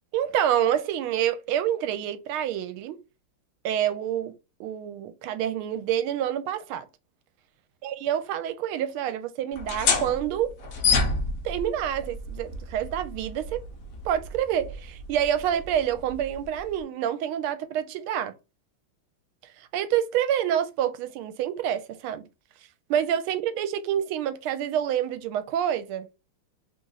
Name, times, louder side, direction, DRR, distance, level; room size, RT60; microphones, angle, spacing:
voice 1, 0.1-3.0 3.6-4.3 4.6-6.9 7.8-10.5 11.4-13.6 14.0-18.3 19.7-22.2 22.9-26.1, right 10 dB, 80° right, 1.4 m, -27 dB
sound 1, 9.5-16.8, left 4 dB, 60° left, 0.9 m, -30 dB
3.4 x 2.5 x 3.9 m
omnidirectional pair, 2.3 m